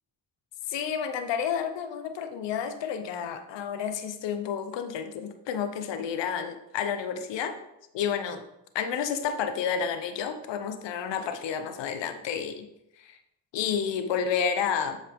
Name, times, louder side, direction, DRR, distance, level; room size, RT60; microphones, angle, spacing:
voice 1, 0.7-7.5 7.9-8.4 8.7-12.7 13.0-13.2 13.5-15.0, left 7 dB, 70° left, 8 dB, 1.0 m, -30 dB
7.8 x 5.5 x 3.7 m, 0.84 s
hypercardioid pair, 50°, 45 cm